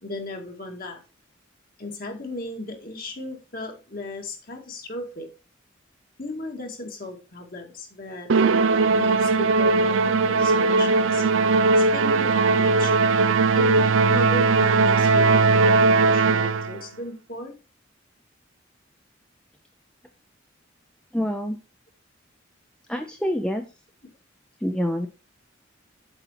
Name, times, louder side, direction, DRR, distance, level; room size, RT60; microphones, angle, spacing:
voice 1, 0.0-1.0 1.8-5.3 6.2-8.3 8.8-11.2 11.8-12.9 13.5-17.5, left 2 dB, 50° left, 2 dB, 2.2 m, -36 dB
Musical instrument, 8.3-16.8, right 3 dB, 85° right, 0.5 m, -19 dB
voice 2, 21.1-21.6 22.9-23.6 24.6-25.1, equal, 5° left, 4 dB, 0.7 m, -26 dB
8.0 x 4.4 x 5.8 m, 0.30 s
head